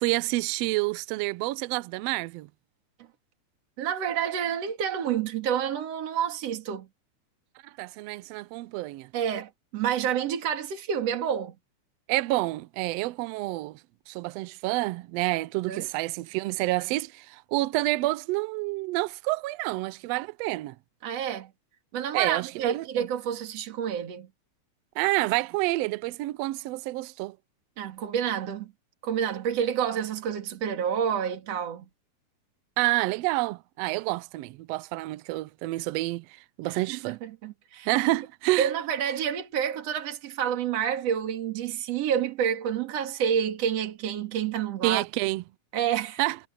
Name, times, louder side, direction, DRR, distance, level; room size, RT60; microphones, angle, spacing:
voice 1, 0.0-2.5 7.6-9.1 12.1-13.8 14.1-20.7 22.1-23.1 25.0-27.4 32.8-37.2 37.8-38.7 44.8-45.4 46.2-46.4, right 20 dB, 90° right, 1.4 m, -28 dB
voice 2, 3.8-6.9 9.1-11.5 15.7-15.9 21.0-21.5 21.9-24.3 27.8-28.7 29.0-31.9 36.7-37.9 38.6-45.0 45.7-46.2, right 8 dB, 55° right, 3.2 m, -29 dB
omnidirectional pair, 3.5 m